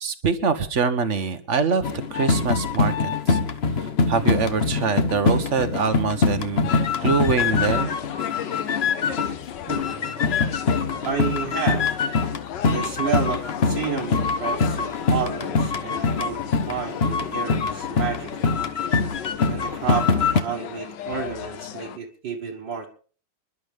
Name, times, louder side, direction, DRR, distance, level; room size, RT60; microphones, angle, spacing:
voice 1, 0.0-3.4 4.1-6.7 7.0-7.9, right 5 dB, 45° right, 10 dB, 1.2 m, -24 dB
sound 1, 1.8-9.4 9.7-20.4, left 4 dB, 45° left, 0.8 m, -24 dB
sound 2, 6.6-22.0, left 9 dB, 65° left, 1.5 m, -36 dB
voice 2, 9.7-10.3 11.0-11.9 12.7-18.6 19.5-22.9, right 6 dB, 65° right, -1 dB, 2.2 m, -31 dB
27.0 x 11.5 x 3.5 m, 0.41 s
omnidirectional pair, 2.2 m